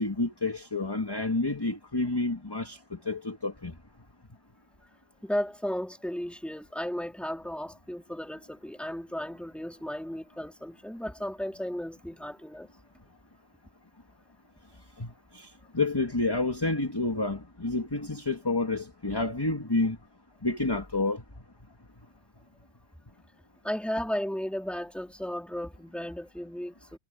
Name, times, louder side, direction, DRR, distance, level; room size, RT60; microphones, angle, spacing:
voice 1, 0.0-3.7 15.0-20.0 20.4-21.2, left 2 dB, 15° left, 1.8 m, -29 dB
voice 2, 5.2-12.7 23.6-27.0, equal, ahead, 3.0 m, -34 dB
omnidirectional pair, 1.5 m